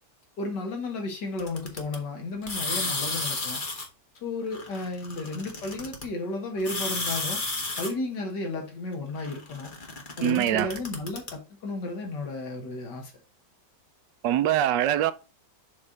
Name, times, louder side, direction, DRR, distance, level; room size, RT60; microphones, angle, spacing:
voice 1, 0.4-3.6 4.2-7.4 7.7-9.7 10.2-13.1, left 2 dB, 75° left, 2.4 m, -33 dB
sound 1, 1.4-2.0 2.4-3.9 4.5-6.0 6.6-7.9 9.2-11.3, left 3 dB, 30° left, 1.3 m, -32 dB
voice 2, 10.2-10.7 14.2-15.1, right 12 dB, 85° right, 1.3 m, -23 dB
7.0 x 3.2 x 5.0 m
omnidirectional pair, 1.9 m